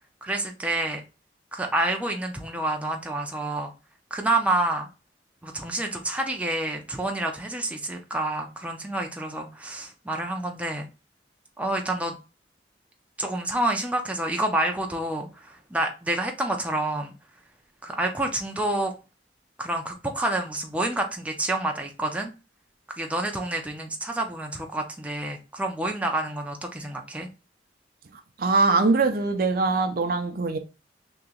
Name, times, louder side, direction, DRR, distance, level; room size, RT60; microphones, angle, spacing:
voice 1, 0.2-1.0 1.5-3.7 4.1-4.9 5.4-10.9 11.6-12.2 13.2-17.1 17.8-18.9 19.6-22.3 23.0-27.3, right 2 dB, 10° right, 0.5 m, -28 dB
voice 2, 28.4-30.6, right 3 dB, 55° right, 0.5 m, -22 dB
2.9 x 2.9 x 3.6 m
head